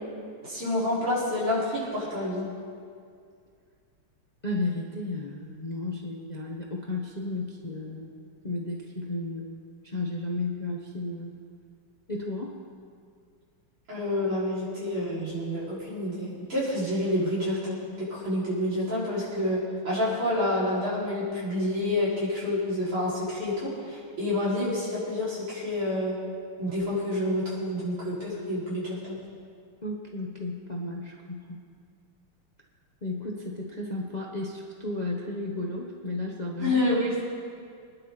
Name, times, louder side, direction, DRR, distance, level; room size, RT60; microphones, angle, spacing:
voice 1, 0.4-2.5 13.9-26.2 26.6-29.2 36.6-37.3, left 1 dB, 85° right, -10 dB, 6.1 m, -28 dB
voice 2, 4.4-8.1 8.4-9.5 9.8-11.3 12.1-12.6 29.8-31.6 33.0-36.8, left 2 dB, 30° left, -1 dB, 0.9 m, -33 dB
25.0 x 10.5 x 4.2 m, 2.2 s
omnidirectional pair, 2.3 m